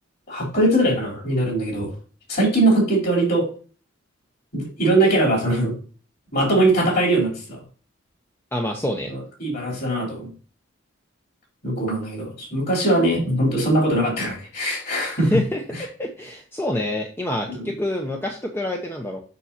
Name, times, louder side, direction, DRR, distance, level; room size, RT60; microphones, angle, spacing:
voice 1, 0.3-1.9 2.3-3.5 4.5-5.7 6.3-7.6 9.1-10.3 11.6-15.4 17.5-17.7, right 1 dB, 50° left, -1 dB, 3.7 m, -21 dB
voice 2, 8.5-9.1 15.3-15.6 16.0-19.2, left 1 dB, 10° left, 2 dB, 0.7 m, -26 dB
6.8 x 6.1 x 2.7 m, 0.40 s
head